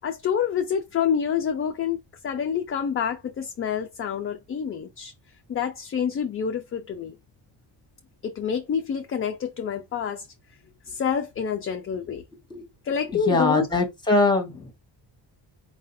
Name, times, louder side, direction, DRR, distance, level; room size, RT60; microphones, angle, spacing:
voice 1, 0.0-5.1 5.5-7.2 8.2-10.3 10.9-12.2 12.8-13.7, left 7 dB, 30° left, 0.4 m, -27 dB
voice 2, 13.3-14.7, left 2 dB, 10° left, 1.1 m, -22 dB
4.7 x 2.5 x 4.2 m
cardioid pair, 165°, 44 cm